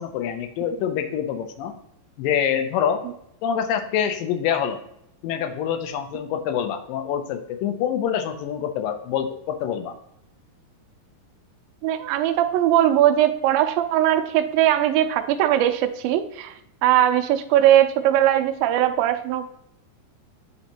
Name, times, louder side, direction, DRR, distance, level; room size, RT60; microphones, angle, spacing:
voice 1, 0.0-1.7 2.2-3.1 3.4-4.8 5.2-10.0, left 8 dB, 80° left, 8 dB, 2.3 m, -26 dB
voice 2, 11.8-16.5 16.8-19.5, right 12 dB, 85° right, 8 dB, 2.4 m, -20 dB
9.7 x 3.9 x 2.9 m, 0.75 s
omnidirectional pair, 4.1 m